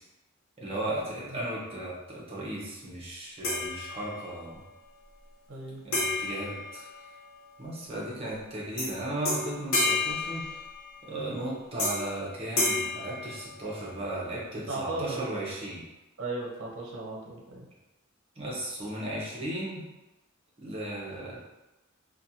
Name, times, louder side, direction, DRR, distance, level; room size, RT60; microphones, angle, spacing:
voice 1, 0.6-4.6 5.8-6.9 7.6-10.6 11.0-15.9 18.4-19.8 20.6-21.4, right 1 dB, 30° right, -5 dB, 0.7 m, -36 dB
sound 1, 3.4-4.4 5.9-7.5 8.8-8.9 9.2-11.1 11.8-12.2 12.6-14.0, left 2 dB, 75° left, 0.9 m, -31 dB
voice 2, 5.5-5.8 14.7-15.2 16.2-17.7, right 2 dB, 65° right, -2 dB, 0.6 m, -36 dB
2.5 x 2.2 x 2.8 m, 1.0 s
head